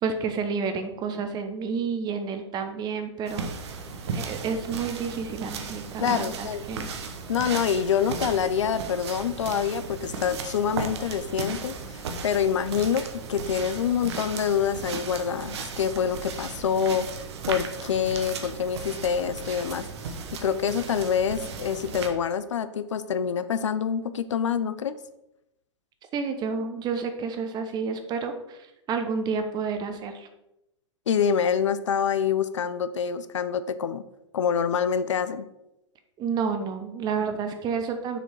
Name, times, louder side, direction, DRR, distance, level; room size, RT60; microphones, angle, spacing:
voice 1, 0.0-3.7 4.1-6.9 26.1-30.3 36.2-38.2, right 5 dB, 25° right, 7 dB, 0.9 m, -30 dB
sound 1, 3.3-22.1, right 5 dB, 60° right, 1.0 m, -36 dB
voice 2, 6.0-6.7 7.3-17.1 17.5-20.1 20.4-25.0 31.1-34.0 34.3-35.5, left 7 dB, 75° left, 13 dB, 0.5 m, -26 dB
6.5 x 4.5 x 4.6 m, 0.88 s
hypercardioid pair, 110°, 16 cm